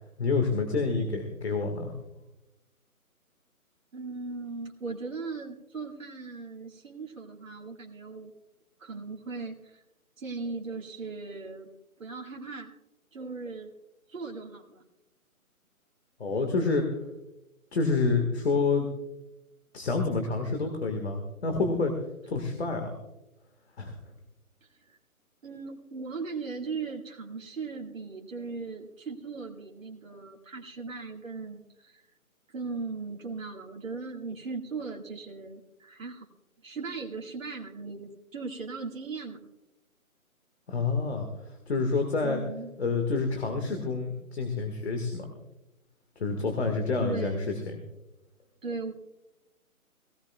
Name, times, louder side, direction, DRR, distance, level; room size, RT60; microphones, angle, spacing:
voice 1, 0.2-1.9 16.2-17.0 17.7-18.9 19.7-21.9 22.3-22.9 23.8-23.9 40.7-42.4 42.8-45.3 46.2-47.5, left 4 dB, 45° left, 5 dB, 1.8 m, -28 dB
voice 2, 3.9-8.3 8.8-9.8 10.2-11.7 12.0-12.7 13.1-13.7 14.1-14.8 24.7-25.0 25.4-32.1 32.5-36.3 36.6-39.4 42.2-42.7 47.0-47.6 48.6-48.9, right 4 dB, 65° right, 0 dB, 2.0 m, -38 dB
18.5 x 17.5 x 2.3 m, 0.93 s
hypercardioid pair, 170°, 43 cm